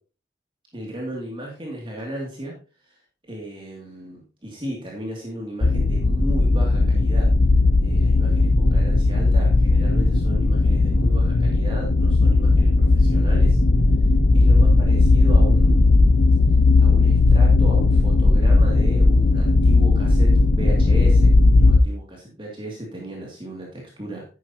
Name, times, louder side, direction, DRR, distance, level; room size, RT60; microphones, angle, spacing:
voice 1, 0.7-2.5 2.9-3.0 3.3-7.3 7.8-13.6 14.3-16.1 16.8-21.3 21.6-24.2, right 1 dB, 30° right, -2 dB, 2.5 m, -35 dB
sound 1, 5.6-21.8, left 3 dB, 75° left, 0.8 m, -16 dB
12.0 x 9.3 x 2.9 m, 0.35 s
head